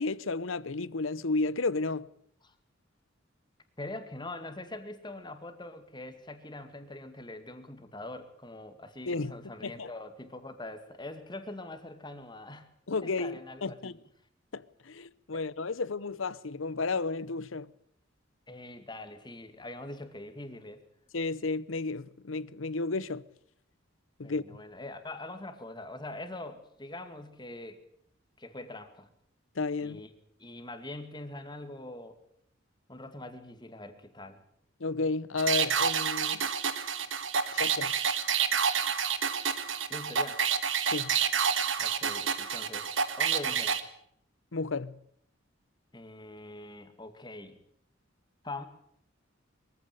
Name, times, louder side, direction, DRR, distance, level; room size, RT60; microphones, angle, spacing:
voice 1, 0.0-2.1 9.1-9.9 12.9-13.9 14.5-17.7 21.1-23.2 24.2-24.6 29.6-30.0 34.8-36.4 37.5-37.9 40.9-41.2 44.5-45.0, left 3 dB, 80° left, 0.9 m, -32 dB
voice 2, 3.8-12.7 13.0-13.9 15.3-15.4 18.5-20.8 24.2-27.8 28.4-29.1 29.8-30.1 30.4-32.2 32.9-34.4 39.9-40.4 41.8-42.9 43.2-43.8 45.9-47.6 48.4-48.7, left 2 dB, 20° left, 2.3 m, -43 dB
sound 1, 35.4-43.8, right 7 dB, 70° right, 1.7 m, -29 dB
23.0 x 15.5 x 9.1 m
head